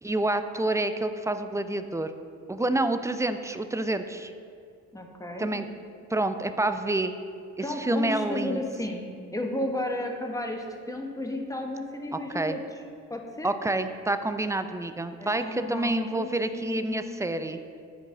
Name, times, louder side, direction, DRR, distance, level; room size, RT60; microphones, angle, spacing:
voice 1, 0.0-2.1 2.5-4.3 5.4-5.6 6.1-7.1 7.6-8.6 12.3-12.6 13.4-17.6, right 2 dB, 10° right, 9 dB, 0.4 m, -28 dB
voice 2, 4.9-5.5 7.6-12.6 13.1-13.5 15.2-17.1, left 1 dB, 10° left, 2 dB, 1.2 m, -33 dB
10.0 x 4.7 x 3.8 m, 2.3 s
supercardioid pair, 55°, 37 cm